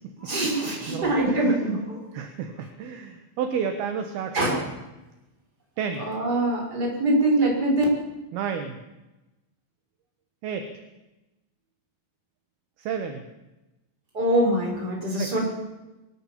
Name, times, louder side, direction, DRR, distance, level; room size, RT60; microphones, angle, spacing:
voice 1, 0.2-2.0 4.3-4.6 6.1-7.8 14.1-15.5, right 1 dB, 20° right, 0 dB, 6.4 m, -23 dB
voice 2, 0.9-1.5 2.1-4.7 5.8-6.1 8.3-8.8 10.4-10.7 12.8-13.2 15.2-15.4, right 7 dB, 65° right, 6 dB, 2.7 m, -31 dB
23.5 x 16.5 x 7.5 m, 1.0 s
omnidirectional pair, 5.9 m